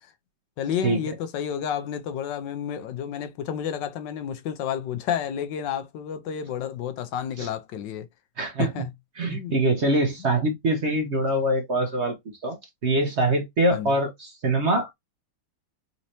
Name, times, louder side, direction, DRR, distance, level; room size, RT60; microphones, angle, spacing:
voice 1, 0.6-8.1 8.6-8.9 9.3-9.5 10.2-10.3 13.7-13.9, left 9 dB, 80° left, 1.3 m, -30 dB
voice 2, 8.4-8.7 9.2-12.2 12.4-14.9, right 1 dB, 50° right, 0.9 m, -24 dB
4.2 x 2.6 x 2.8 m
omnidirectional pair, 2.0 m